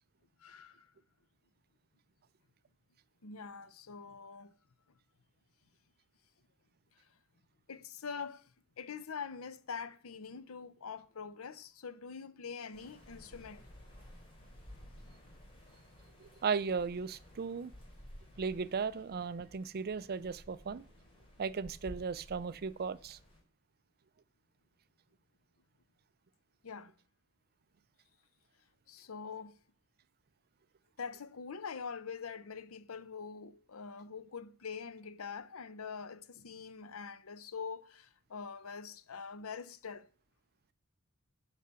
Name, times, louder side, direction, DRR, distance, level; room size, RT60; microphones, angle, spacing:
voice 1, 0.4-0.9 3.2-4.5 7.7-8.5 8.8-13.6 26.6-26.9 28.9-29.6 31.0-40.1, left 5 dB, 75° left, 0.7 m, -44 dB
sound 1, 12.7-23.4, equal, 25° left, 3.5 m, -55 dB
voice 2, 16.2-17.7 18.4-20.8 21.4-23.2, right 5 dB, 45° right, 0.5 m, -36 dB
9.8 x 5.6 x 6.8 m
head